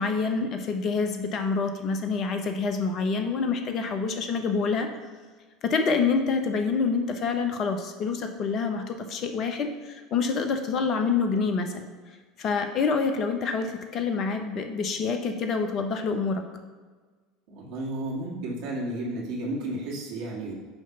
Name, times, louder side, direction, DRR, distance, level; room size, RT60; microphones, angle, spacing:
voice 1, 0.0-5.0 5.6-11.9 12.4-16.4, left 4 dB, 45° left, 6 dB, 0.9 m, -27 dB
voice 2, 17.5-20.5, right 1 dB, 60° right, -4 dB, 1.9 m, -32 dB
9.6 x 3.2 x 5.6 m, 1.4 s
figure-of-eight pair, 70°, 0 cm